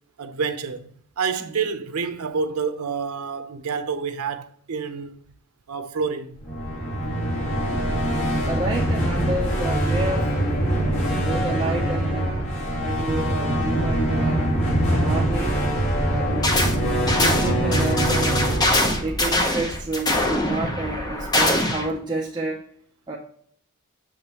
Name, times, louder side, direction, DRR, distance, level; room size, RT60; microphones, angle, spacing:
voice 1, 0.2-0.9 1.2-5.2 5.7-6.4, right 5 dB, 80° right, 0.7 m, -28 dB
sound 1, 6.3-20.4, right 1 dB, 70° left, 2.0 m, -24 dB
voice 2, 8.5-10.3 11.0-12.5 12.8-14.5 14.9-15.6 16.1-16.5 17.1-18.4 19.0-22.6 23.1-23.2, right 2 dB, 20° right, 0.6 m, -30 dB
sound 2, 16.4-16.8 17.1-21.9, left 1 dB, 20° left, 0.7 m, -23 dB
6.8 x 5.1 x 2.9 m
head